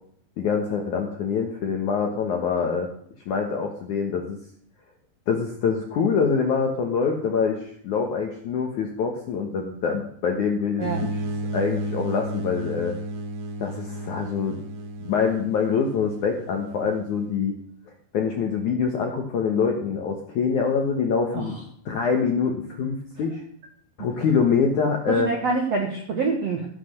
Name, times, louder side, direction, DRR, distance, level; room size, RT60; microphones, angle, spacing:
voice 1, 0.4-2.9 3.3-4.4 5.3-11.2 11.5-13.0 13.6-14.6 15.0-17.5 18.1-21.6 21.9-23.4 24.0-25.3, left 5 dB, 70° left, 2 dB, 1.9 m, -25 dB
sound 1, 10.8-17.4, right 1 dB, 85° right, 4.2 m, -33 dB
voice 2, 25.1-26.7, right 4 dB, 65° right, 2 dB, 1.5 m, -26 dB
15.0 x 7.8 x 6.6 m, 0.65 s
omnidirectional pair, 5.2 m